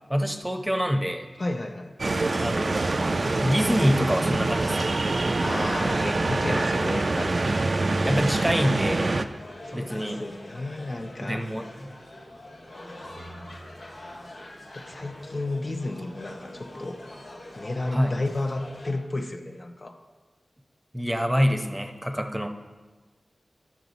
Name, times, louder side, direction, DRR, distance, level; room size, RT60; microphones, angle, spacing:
voice 1, 0.1-1.3 2.4-2.9 3.4-4.9 8.0-9.2 9.7-10.2 11.2-11.9 17.9-18.2 20.9-22.5, equal, 10° right, 5 dB, 0.7 m, -26 dB
voice 2, 1.4-2.0 5.4-7.4 9.7-11.5 14.7-17.0 17.5-20.0, left 2 dB, 50° left, 4 dB, 0.6 m, -32 dB
sound 1, 2.0-9.3, right 2 dB, 55° right, 0.4 m, -25 dB
sound 2, 2.4-18.9, left 1 dB, 90° left, 1.6 m, -44 dB
10.5 x 6.0 x 4.0 m, 1.3 s
wide cardioid pair, 55°, 0 cm